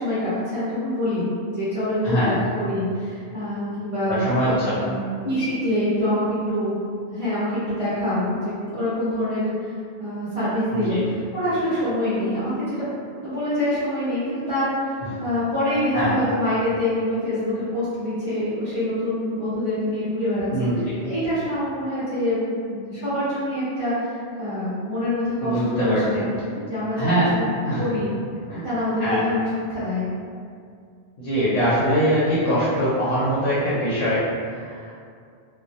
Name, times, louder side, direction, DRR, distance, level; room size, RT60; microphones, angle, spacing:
voice 1, 0.0-6.8 7.1-11.0 11.3-12.9 13.2-14.9 15.2-20.7 21.0-27.4 27.8-28.1 28.6-30.1, left 1 dB, 40° right, -13 dB, 0.5 m, -25 dB
voice 2, 4.1-4.9 10.7-11.0 15.9-16.2 20.5-21.0 25.4-26.2 26.9-27.3 27.7-27.9 28.5-28.7 29.0-29.3 31.2-35.0, equal, 75° left, -10 dB, 0.9 m, -23 dB
2.1 x 2.1 x 2.6 m, 2.2 s
omnidirectional pair, 1.2 m